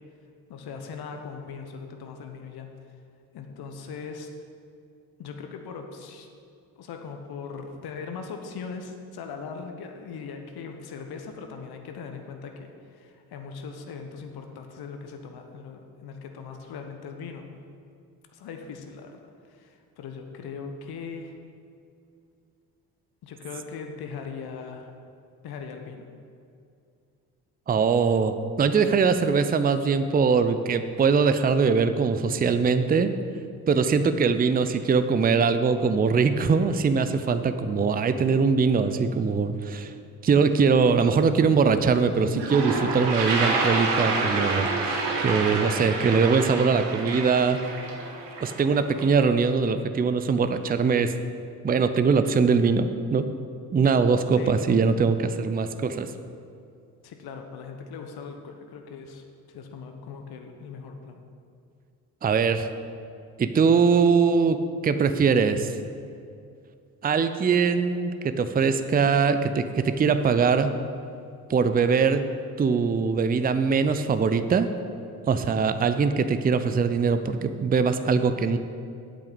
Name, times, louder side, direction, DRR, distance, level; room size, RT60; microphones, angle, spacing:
voice 1, 0.5-2.7 3.3-4.3 5.2-6.3 6.8-17.4 18.3-19.2 19.5-21.4 23.2-24.9 25.4-26.0 54.3-54.6 57.0-61.2, left 5 dB, 50° left, 4 dB, 1.2 m, -39 dB
voice 2, 27.7-33.1 33.7-39.9 40.2-47.6 48.4-51.1 51.6-53.2 53.7-56.1 62.2-62.7 63.4-64.6 64.8-65.7 67.0-70.7 71.5-72.2 72.6-74.7 75.3-78.6, right 5 dB, 20° right, 10 dB, 0.6 m, -22 dB
Toilet flush, 41.9-42.0 42.3-49.1, right 3 dB, 60° right, 1.7 m, -28 dB
8.4 x 6.0 x 8.0 m, 2.4 s
hypercardioid pair, 50°, 47 cm